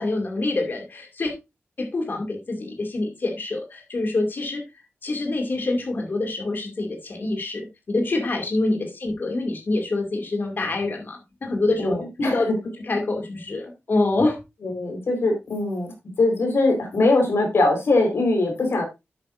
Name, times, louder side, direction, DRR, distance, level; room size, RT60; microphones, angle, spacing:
voice 1, 0.0-1.3 1.8-4.6 5.0-12.5 12.8-14.4, left 2 dB, 45° left, 3 dB, 2.4 m, -26 dB
voice 2, 11.8-12.5 14.6-15.9 16.2-18.8, left 2 dB, 65° left, 2 dB, 4.2 m, -22 dB
10.5 x 8.8 x 2.6 m, 0.23 s
wide cardioid pair, 160°, 5 cm